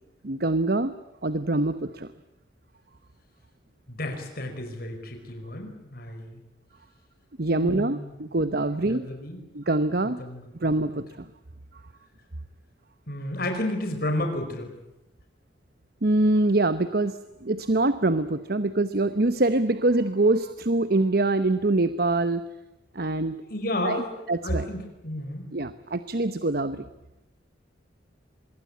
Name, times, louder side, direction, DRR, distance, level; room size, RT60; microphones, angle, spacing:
voice 1, 0.2-0.9 1.2-2.1 7.4-9.1 9.5-10.2 10.6-11.2 16.0-22.4 22.9-23.4 23.8-24.0 24.3-24.6 25.5-26.8, right 2 dB, 55° right, 12 dB, 1.0 m, -24 dB
voice 2, 3.9-6.4 7.5-9.4 10.2-10.8 13.1-14.7 23.5-24.2 24.4-25.5, left 1 dB, 55° left, 5 dB, 5.1 m, -32 dB
25.0 x 22.0 x 8.7 m, 0.90 s
head